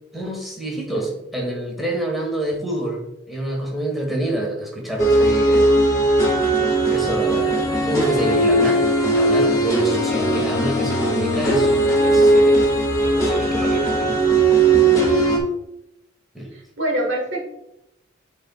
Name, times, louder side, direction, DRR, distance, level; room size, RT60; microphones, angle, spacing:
voice 1, 0.1-5.7 6.9-12.7 13.0-14.2 16.3-16.6, right 1 dB, ahead, -2 dB, 1.4 m, -28 dB
sound 1, 5.0-15.4, right 2 dB, 15° left, 1.6 m, -18 dB
voice 2, 12.0-12.3 14.7-15.1 16.5-17.5, right 1 dB, 70° right, 1 dB, 1.6 m, -27 dB
12.0 x 4.1 x 2.3 m, 0.85 s
head